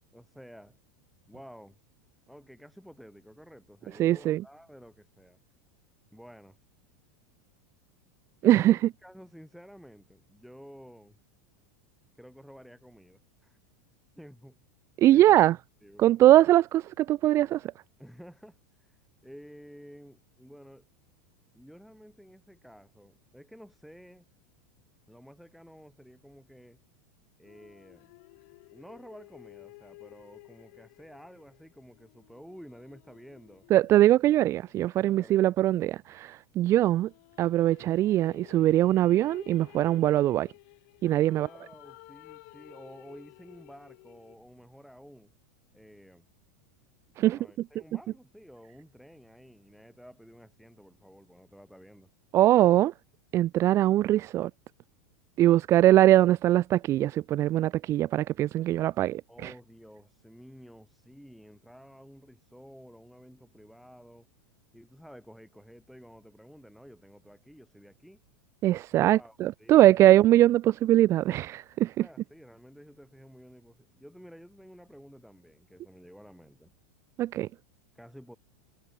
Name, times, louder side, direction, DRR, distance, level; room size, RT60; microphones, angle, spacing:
voice 1, 0.1-0.7 1.3-1.8 2.3-5.4 6.1-6.6 8.4-11.2 12.1-13.6 14.1-14.6 15.1-15.4 15.8-16.1 18.0-20.9 21.5-24.3 25.1-26.8 27.4-28.1 28.7-33.7 35.0-35.6 41.2-45.3 45.7-46.3 47.2-52.1 59.3-64.3 64.7-68.2 68.9-70.0 72.0-76.7 77.9-78.4, equal, ahead, 5.0 m, -51 dB
voice 2, 4.0-4.4 8.4-8.8 15.0-15.5 16.0-17.7 33.7-37.1 37.4-40.5 41.0-41.5 47.2-47.4 52.3-52.9 53.3-54.5 55.4-59.5 68.6-72.1 77.2-77.5, right 14 dB, 30° right, 0.4 m, -22 dB
sound 1, 27.4-35.1 36.9-44.4, left 28 dB, 55° left, 3.4 m, -54 dB
supercardioid pair, 140°, 9 cm